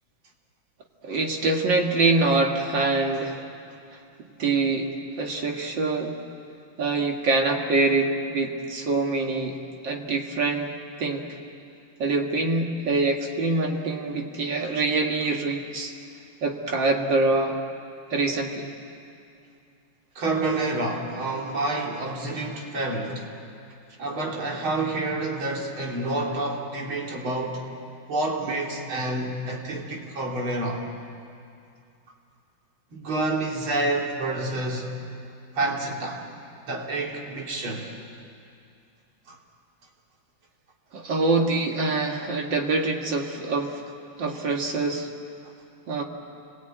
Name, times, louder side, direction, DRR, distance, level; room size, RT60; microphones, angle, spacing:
voice 1, 1.0-3.4 4.4-4.9 5.2-6.2 6.8-9.6 9.8-10.7 11.0-11.3 12.0-15.9 16.4-17.6 18.1-18.7 40.9-43.8 44.2-45.1 45.9-46.0, right 3 dB, 65° right, 2 dB, 2.5 m, -24 dB
voice 2, 20.2-23.3 24.0-27.6 28.1-30.8 32.9-35.0 35.6-36.2 36.7-37.9 39.3-39.4, right 2 dB, 80° right, -1 dB, 3.6 m, -28 dB
29.0 x 21.5 x 9.2 m, 2.5 s
omnidirectional pair, 2.2 m